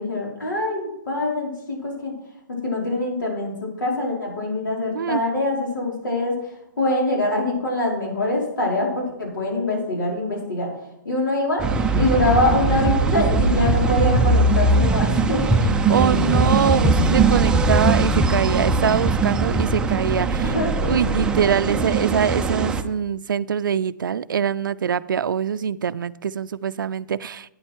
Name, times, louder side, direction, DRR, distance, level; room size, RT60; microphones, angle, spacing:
voice 1, 0.0-2.1 2.5-3.5 3.8-10.7 11.0-11.6 11.9-16.4 20.4-21.0, left 1 dB, 85° left, -2 dB, 4.8 m, -24 dB
sound 1, 11.6-22.8, right 3 dB, 10° right, 0.5 m, -20 dB
voice 2, 15.9-20.5 20.8-27.5, right 7 dB, 85° right, 14 dB, 0.4 m, -23 dB
9.4 x 8.9 x 4.6 m, 0.84 s
hypercardioid pair, 150°, 11 cm